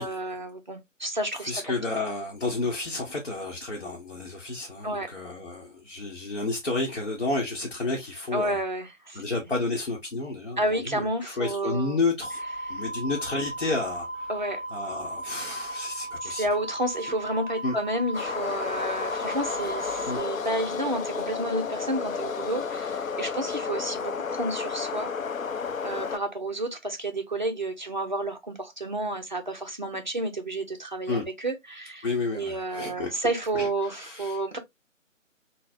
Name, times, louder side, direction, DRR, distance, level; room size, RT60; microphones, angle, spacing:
voice 1, 0.0-1.8 4.8-5.1 8.3-9.2 10.6-12.0 12.7-12.8 14.3-14.6 16.2-25.1 25.8-32.1 32.3-34.6, right 1 dB, 40° right, 0.5 m, -31 dB
voice 2, 1.3-8.6 9.1-12.4 12.7-14.3 14.7-16.5 17.6-17.8 20.1-20.2 31.1-31.3 32.0-33.1 33.5-34.4, left 3 dB, 50° left, 0.8 m, -31 dB
sound 1, 12.2-20.2, right 1 dB, 15° right, 0.8 m, -36 dB
sound 2, 18.1-26.2, left 5 dB, 85° left, 0.5 m, -32 dB
3.8 x 2.0 x 2.4 m
figure-of-eight pair, 155°, 39 cm